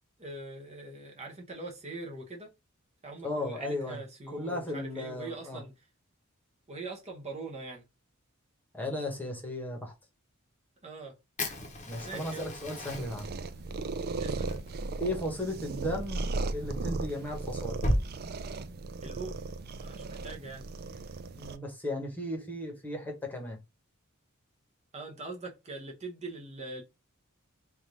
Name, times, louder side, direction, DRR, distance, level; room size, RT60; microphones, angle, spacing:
voice 1, 0.2-2.5 3.0-5.7 6.7-7.8 10.8-11.1 12.0-12.5 14.2-14.7 19.0-19.3 19.8-20.7 24.9-26.8, right 3 dB, 30° right, 0.9 m, -42 dB
voice 2, 3.2-4.0 4.3-5.6 8.7-9.9 11.9-13.3 15.0-17.8 21.4-23.6, left 1 dB, 10° left, 1.2 m, -35 dB
Fire, 11.4-18.0, equal, 35° left, 0.9 m, -37 dB
sound 1, 12.9-21.6, right 3 dB, 50° right, 0.4 m, -36 dB
3.4 x 2.6 x 4.6 m
head